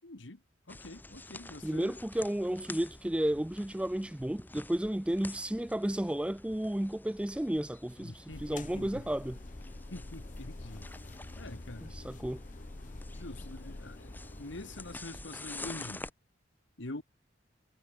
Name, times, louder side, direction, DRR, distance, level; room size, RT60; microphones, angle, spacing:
voice 1, 0.0-0.4 0.7-2.0 8.0-9.0 9.9-10.9 11.4-12.0 13.1-14.1 14.4-16.1 16.8-17.0, left 2 dB, 70° left, 1.8 m, -45 dB
sound 1, 0.7-16.1, left 2 dB, 10° left, 1.1 m, -49 dB
voice 2, 1.6-9.4 11.9-12.4, right 1 dB, 5° right, 0.3 m, -32 dB
sound 2, 8.3-15.0, left 2 dB, 40° left, 0.9 m, -46 dB
head